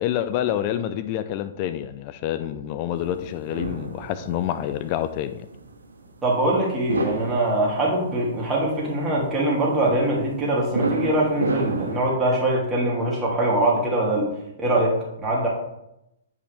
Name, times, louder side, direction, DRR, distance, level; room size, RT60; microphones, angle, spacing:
voice 1, 0.0-5.5, left 11 dB, 40° left, 11 dB, 0.4 m, -27 dB
sound 1, 3.0-12.0, right 3 dB, 90° right, 1.2 m, -31 dB
voice 2, 6.2-14.3 14.6-15.5, right 1 dB, 15° right, -4 dB, 2.6 m, -23 dB
8.7 x 5.1 x 3.4 m, 0.83 s
hypercardioid pair, 125°, 0 cm